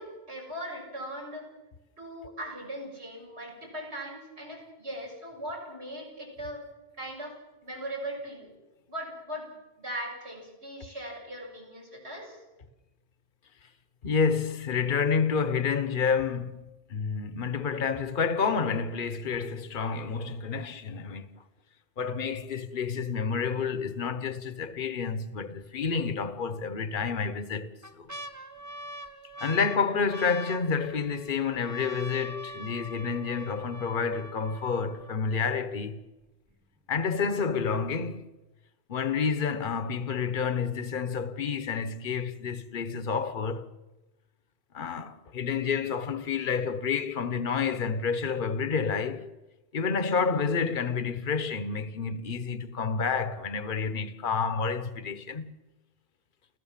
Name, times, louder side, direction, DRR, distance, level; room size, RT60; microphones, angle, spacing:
voice 1, 0.0-1.5 2.0-6.6 7.0-7.4 7.6-8.5 8.9-12.4, right 1 dB, 75° right, 7.0 m, -39 dB
voice 2, 14.0-16.6 16.9-21.3 22.0-28.1 29.4-36.0 36.9-38.2 38.9-43.7 44.7-49.3 49.7-55.6, left 5 dB, 50° left, 1.3 m, -29 dB
sound 1, 24.9-25.1 25.6-25.7 26.6-27.1 27.6-35.5 36.2-36.3 36.5-37.0 37.5-37.6, right 1 dB, 15° right, 1.3 m, -44 dB
29.5 x 15.5 x 7.4 m
omnidirectional pair, 1.1 m